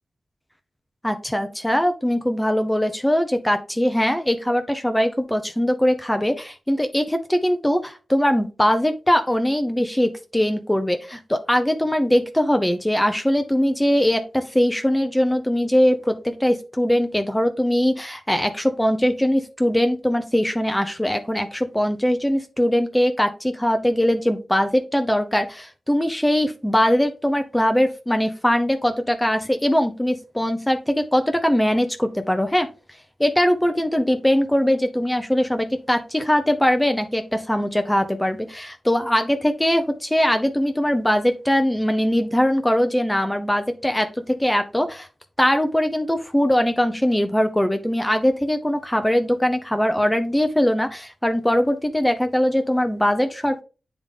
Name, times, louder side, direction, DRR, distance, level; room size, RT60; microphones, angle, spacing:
voice 1, 1.0-32.7 33.2-45.1 45.4-53.6, equal, 10° left, 7 dB, 0.7 m, -21 dB
8.0 x 3.6 x 3.6 m, 0.33 s
cardioid pair, 55°, 0 cm